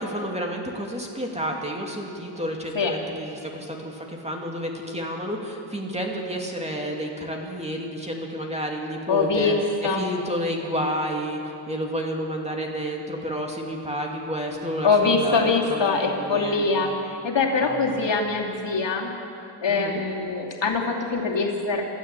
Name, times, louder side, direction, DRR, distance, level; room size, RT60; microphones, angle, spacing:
voice 1, 0.0-9.6 9.8-11.4 11.7-16.9 17.6-18.2 19.7-20.0, equal, 15° right, 0 dB, 2.5 m, -30 dB
voice 2, 9.1-10.0 14.8-16.9 17.2-19.1 19.6-21.9, left 4 dB, 65° left, -1 dB, 2.8 m, -23 dB
27.5 x 13.5 x 8.3 m, 2.8 s
wide cardioid pair, 150°, 47 cm